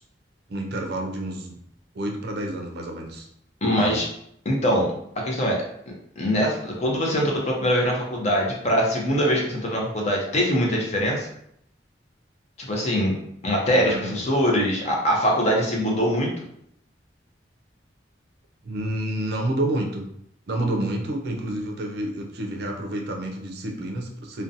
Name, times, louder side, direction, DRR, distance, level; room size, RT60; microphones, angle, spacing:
voice 1, 0.5-1.6 1.9-3.3 3.6-4.0 13.8-14.2 18.6-20.0 20.5-24.4, right 1 dB, 60° right, 2 dB, 0.4 m, -29 dB
voice 2, 3.6-4.1 4.5-4.9 5.2-5.6 6.2-11.3 12.6-13.2 13.4-16.3, equal, 35° left, -2 dB, 0.6 m, -23 dB
2.5 x 2.2 x 2.6 m, 0.71 s
head